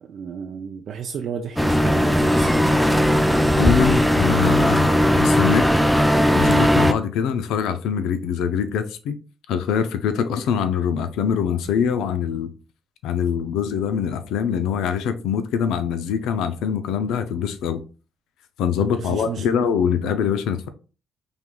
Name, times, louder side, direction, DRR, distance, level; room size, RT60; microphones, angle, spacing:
voice 1, 0.0-2.7 18.8-19.7, right 7 dB, 65° right, 0.4 m, -33 dB
sound 1, 1.6-6.9, equal, ahead, 0.4 m, -18 dB
voice 2, 3.6-5.8 6.3-9.2 9.5-12.5 13.0-17.8 18.6-20.7, left 7 dB, 90° left, 0.4 m, -23 dB
5.1 x 3.1 x 2.2 m
cardioid pair, 90°, 0 cm